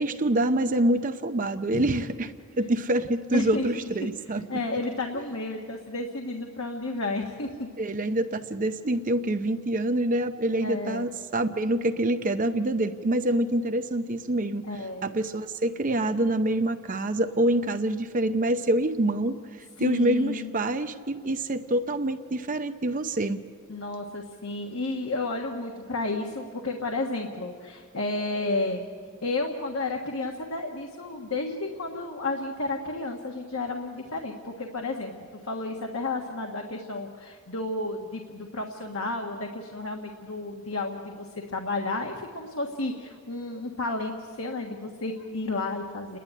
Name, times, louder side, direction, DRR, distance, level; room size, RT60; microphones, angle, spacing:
voice 1, 0.0-4.4 7.8-14.6 15.0-23.4, right 1 dB, 40° right, 8 dB, 0.6 m, -26 dB
voice 2, 3.3-3.6 4.5-7.7 10.6-11.1 14.6-15.1 19.8-20.5 23.7-28.9 29.2-35.1 35.5-46.2, left 2 dB, 75° left, 2 dB, 1.5 m, -32 dB
29.5 x 11.0 x 9.9 m, 2.1 s
head